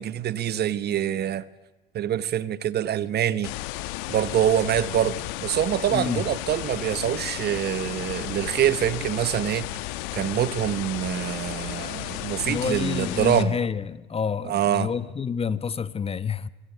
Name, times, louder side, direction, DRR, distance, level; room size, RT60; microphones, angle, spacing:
voice 1, 0.0-1.4 1.9-3.5 4.1-9.7 10.1-13.6 14.4-14.9, right 10 dB, 35° right, 1.3 m, -25 dB
sound 1, 3.4-13.4, left 17 dB, 60° left, 1.5 m, -34 dB
voice 2, 5.9-6.2 12.5-16.5, left 6 dB, 20° left, 1.0 m, -28 dB
25.0 x 23.0 x 8.3 m
hypercardioid pair, 95°, 30 cm